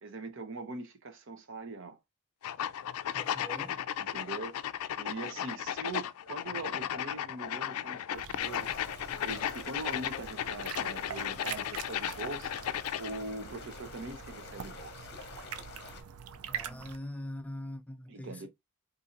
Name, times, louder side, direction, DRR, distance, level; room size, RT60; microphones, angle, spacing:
voice 1, 0.0-2.0 4.0-4.6 5.0-12.6 13.0-15.1 18.1-18.5, right 3 dB, 60° right, 0.7 m, -42 dB
sound 1, 2.4-13.2, left 10 dB, 85° left, 0.3 m, -35 dB
voice 2, 3.1-3.8 16.5-18.5, left 1 dB, 5° left, 0.4 m, -42 dB
sound 2, 8.1-17.0, right 7 dB, 85° right, 0.5 m, -45 dB
sound 3, 8.4-16.0, left 4 dB, 50° left, 0.8 m, -48 dB
3.9 x 2.7 x 2.5 m
head